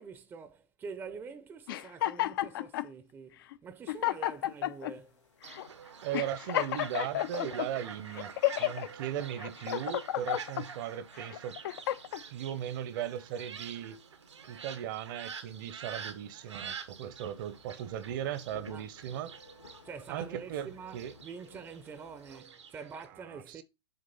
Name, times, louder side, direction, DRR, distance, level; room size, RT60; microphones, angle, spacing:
voice 1, 0.0-5.2 9.1-9.3 18.7-18.9 19.8-23.6, right 5 dB, 15° right, 0.6 m, -46 dB
sound 1, 1.7-2.9 3.5-3.6 3.9-4.9 5.5-5.7 6.1-7.7 8.2-8.9 9.4-10.7 11.2-12.2, left 14 dB, 50° left, 0.5 m, -31 dB
sound 2, 3.9-22.4, left 3 dB, 90° left, 2.5 m, -60 dB
Fowl, 5.4-23.0, right 6 dB, 80° right, 1.1 m, -47 dB
voice 2, 6.0-8.3 8.6-11.6 12.3-14.0 14.5-19.4 20.1-21.1 23.3-23.4, right 10 dB, 45° right, 0.8 m, -37 dB
6.7 x 3.6 x 5.6 m
hypercardioid pair, 120°, 15 cm